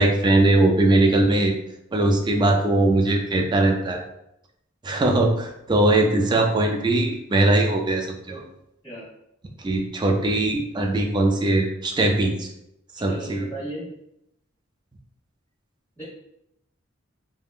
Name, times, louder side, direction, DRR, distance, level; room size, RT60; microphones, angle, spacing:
voice 1, 0.0-1.5 1.9-4.0 4.8-8.4 9.6-12.5 13.0-13.4, right 2 dB, 20° right, 3 dB, 0.3 m, -20 dB
voice 2, 13.0-13.9 16.0-16.1, right 1 dB, 10° left, -14 dB, 1.2 m, -35 dB
3.4 x 2.2 x 2.4 m, 0.80 s
head